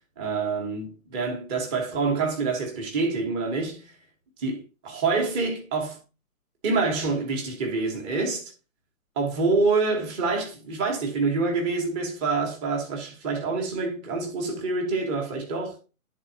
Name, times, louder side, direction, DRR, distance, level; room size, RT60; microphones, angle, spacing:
voice 1, 0.2-3.9 4.4-6.0 6.6-8.5 9.1-15.8, right 4 dB, 15° right, 1.4 m, -26 dB
12.5 x 4.1 x 2.8 m
hypercardioid pair, 155°, 45 cm